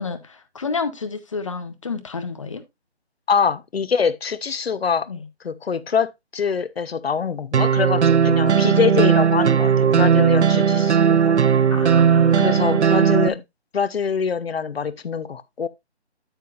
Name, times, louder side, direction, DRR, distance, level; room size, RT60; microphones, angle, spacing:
voice 1, 0.0-2.6 5.1-5.2 11.7-13.4, left 4 dB, 30° left, 0.7 m, -30 dB
voice 2, 3.3-5.1 5.4-11.3 12.4-13.4 13.7-15.7, left 6 dB, 65° left, 0.7 m, -24 dB
sound 1, 7.5-13.3, right 7 dB, 80° right, 0.6 m, -17 dB
9.1 x 8.6 x 2.4 m
figure-of-eight pair, 155°, 34 cm